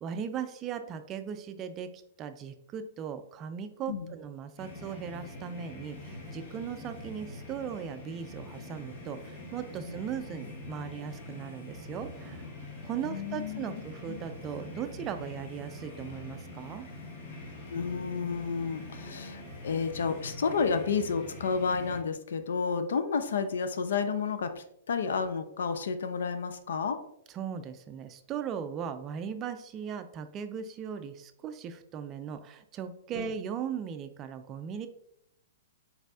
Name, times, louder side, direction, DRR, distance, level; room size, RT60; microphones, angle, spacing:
voice 1, 0.0-12.5 12.8-16.9 27.3-34.9, right 7 dB, 30° right, 9 dB, 0.3 m, -38 dB
sound 1, 4.6-22.0, left 2 dB, 50° left, 1.0 m, -44 dB
voice 2, 13.0-13.7 14.1-14.2 17.7-27.0 33.2-33.3, left 5 dB, 70° left, 9 dB, 0.4 m, -31 dB
4.1 x 4.0 x 2.3 m, 0.74 s
hypercardioid pair, 120°, 0 cm